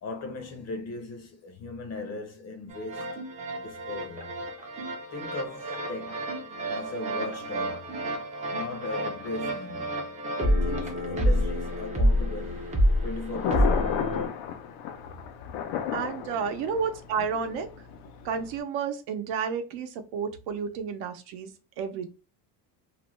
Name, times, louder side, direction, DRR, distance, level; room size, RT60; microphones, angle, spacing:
voice 1, 0.0-3.2 3.6-4.4 5.1-8.1 8.5-14.1, left 2 dB, 35° left, 0.6 m, -38 dB
sound 1, 2.7-14.3, equal, 15° right, 0.4 m, -29 dB
Thunder, 12.6-18.6, left 8 dB, 85° left, 0.6 m, -34 dB
voice 2, 15.9-17.7 18.2-21.5 21.8-22.1, right 6 dB, 75° right, 0.7 m, -31 dB
2.5 x 2.1 x 3.0 m
cardioid pair, 145°, 46 cm